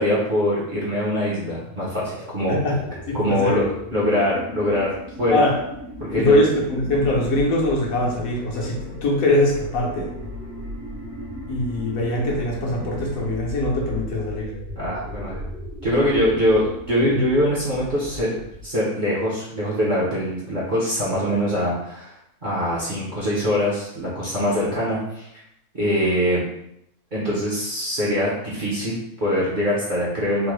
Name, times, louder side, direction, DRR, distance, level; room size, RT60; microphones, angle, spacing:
voice 1, 0.0-2.6 3.1-4.9 5.2-5.4 6.1-6.4 14.8-15.4 15.8-18.3 18.6-22.1 22.4-25.3 25.7-26.4 27.1-30.5, equal, 45° right, -7 dB, 0.7 m, -23 dB
sound 1, 1.4-18.8, left 1 dB, 80° right, 1.4 m, -37 dB
voice 2, 3.1-3.6 5.3-5.6 6.1-10.1 11.5-14.5 17.1-17.2, left 1 dB, 70° left, -2 dB, 1.1 m, -22 dB
sound 2, 5.0-13.3, right 2 dB, 60° right, 1.2 m, -44 dB
3.7 x 2.0 x 3.1 m, 0.78 s
omnidirectional pair, 1.6 m